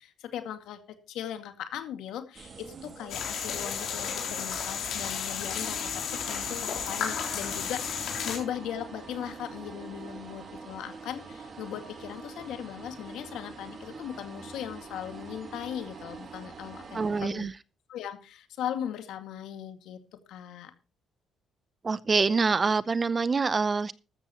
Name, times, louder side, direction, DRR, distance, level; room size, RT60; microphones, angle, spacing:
voice 1, 0.0-17.5 17.9-20.7, left 10 dB, 80° left, 2.1 m, -38 dB
sound 1, 2.3-17.2, right 4 dB, 40° right, 2.7 m, -44 dB
sound 2, 3.1-8.4, left 7 dB, 65° left, 3.8 m, -33 dB
voice 2, 16.9-17.5 21.8-23.9, right 4 dB, 25° right, 0.7 m, -25 dB
14.0 x 13.5 x 3.0 m
cardioid pair, 120°, 0 cm